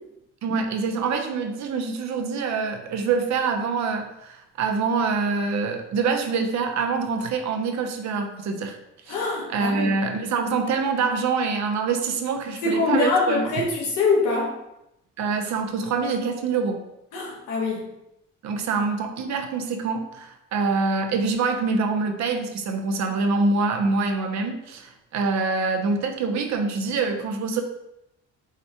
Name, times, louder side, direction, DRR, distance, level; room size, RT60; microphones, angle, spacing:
voice 1, 0.4-8.8 9.1-13.7 15.2-16.8 18.4-27.6, right 4 dB, 65° right, 5 dB, 0.6 m, -25 dB
voice 2, 9.1-9.9 12.6-14.5 17.1-17.8, left 3 dB, 90° left, -2 dB, 1.0 m, -23 dB
4.8 x 2.1 x 2.7 m, 0.86 s
cardioid pair, 90°, 30 cm